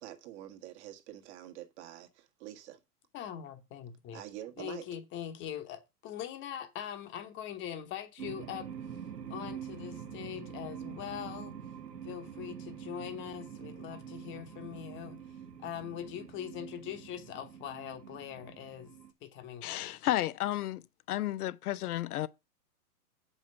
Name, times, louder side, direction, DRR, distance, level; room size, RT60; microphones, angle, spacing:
voice 1, 0.0-2.8 4.1-4.8, right 12 dB, 45° right, 1.6 m, -46 dB
voice 2, 3.1-4.2 4.6-9.0 9.3-11.6 12.0-15.2 15.6-18.9 19.2-19.9, left 10 dB, 25° left, 1.1 m, -42 dB
sound 1, 8.2-19.1, right 8 dB, 90° right, 1.4 m, -45 dB
voice 3, 19.6-20.8 21.1-22.3, left 14 dB, 70° left, 0.7 m, -32 dB
7.3 x 5.6 x 5.5 m
hypercardioid pair, 130°, 47 cm